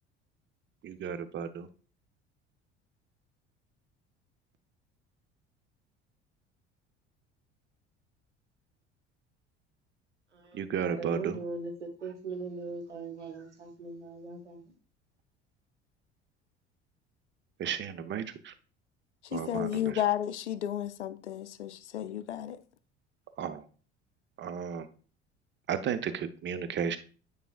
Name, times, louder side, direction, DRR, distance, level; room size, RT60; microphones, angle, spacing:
voice 1, 0.8-1.7 10.5-11.4 17.6-18.5 19.3-20.0 23.4-23.6 24.4-24.9 25.7-27.0, right 7 dB, 35° right, 0.8 m, -34 dB
voice 2, 10.8-14.6, right 3 dB, 85° right, 1.1 m, -40 dB
voice 3, 19.2-22.6, left 11 dB, 80° left, 0.5 m, -32 dB
9.0 x 4.9 x 2.4 m
figure-of-eight pair, 60°, 34 cm